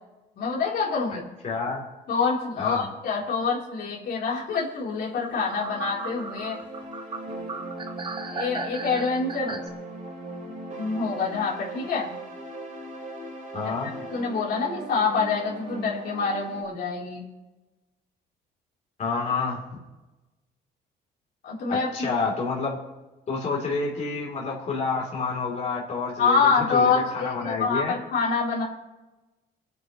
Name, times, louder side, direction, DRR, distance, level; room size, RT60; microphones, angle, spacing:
voice 1, 0.4-1.3 2.1-6.6 8.3-9.6 10.8-12.1 13.8-17.3 21.4-22.1 26.2-28.6, left 5 dB, 60° left, -5 dB, 3.9 m, -26 dB
voice 2, 1.4-1.8 2.6-2.9 9.4-9.6 13.5-13.9 19.0-19.8 21.7-22.8 23.3-27.9, left 4 dB, 40° left, -3 dB, 3.5 m, -29 dB
sound 1, 5.0-16.6, right 2 dB, 40° right, 3.9 m, -39 dB
sound 2, 5.2-9.7, right 4 dB, 25° right, 0.8 m, -36 dB
26.0 x 9.4 x 3.2 m, 1.1 s
cardioid pair, 120°, 19 cm